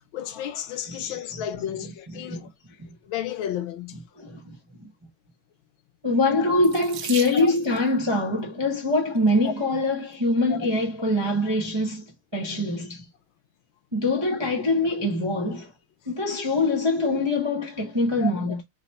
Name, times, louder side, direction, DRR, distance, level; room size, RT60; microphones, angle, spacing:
voice 1, 0.1-2.5 3.0-4.0 7.3-7.5 10.5-10.6 14.2-14.3 18.2-18.3, left 10 dB, 75° left, 1.4 m, -32 dB
voice 2, 0.9-1.9 2.3-2.5 4.2-4.9 6.0-13.1 13.9-15.7 16.1-18.6, left 2 dB, 30° right, 0.5 m, -24 dB
Water tap faucet / Sink (filling or washing), 6.6-7.9 8.9-9.3 10.0-10.1 10.4-10.6, right 9 dB, 70° right, 0.9 m, -37 dB
4.0 x 2.2 x 4.2 m
omnidirectional pair, 2.3 m